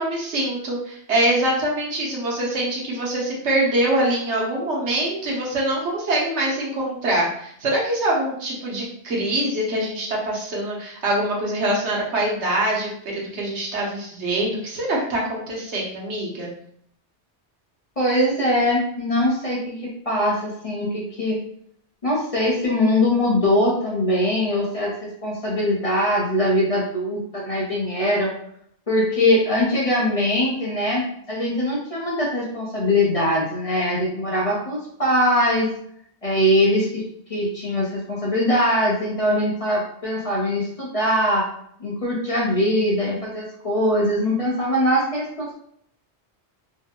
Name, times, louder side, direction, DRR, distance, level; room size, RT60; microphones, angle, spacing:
voice 1, 0.0-16.5, right 1 dB, 75° right, -3 dB, 1.2 m, -24 dB
voice 2, 18.0-21.4 22.0-28.3 28.9-35.7 36.2-41.5 41.8-45.5, left 1 dB, 35° left, -5 dB, 0.7 m, -22 dB
3.3 x 2.2 x 2.9 m, 0.67 s
omnidirectional pair, 1.2 m